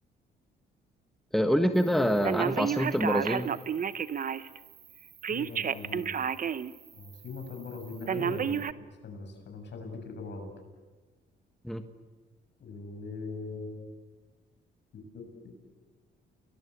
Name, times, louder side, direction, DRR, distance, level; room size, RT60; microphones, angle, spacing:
voice 1, 1.3-3.5 11.6-11.9, equal, ahead, 7 dB, 1.5 m, -26 dB
Telephone, 2.2-4.6 5.2-6.7 7.1-7.2 8.1-8.7, right 7 dB, 45° right, 0.9 m, -30 dB
voice 2, 5.3-6.1 6.9-8.7 9.0-10.5 12.6-13.9 14.9-15.5, left 3 dB, 60° left, 4 dB, 7.4 m, -41 dB
29.0 x 21.0 x 8.4 m, 1.3 s
cardioid pair, 90°, 20 cm